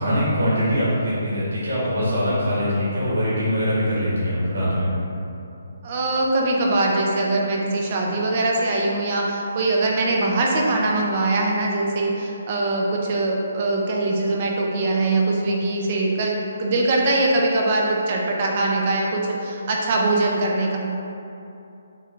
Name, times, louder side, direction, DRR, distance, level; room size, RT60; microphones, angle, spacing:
voice 1, 0.0-4.9, equal, 80° right, -8 dB, 1.4 m, -22 dB
voice 2, 5.8-20.8, right 2 dB, 30° right, -1 dB, 0.5 m, -22 dB
6.1 x 2.2 x 3.7 m, 2.7 s
hypercardioid pair, 175°, 0 cm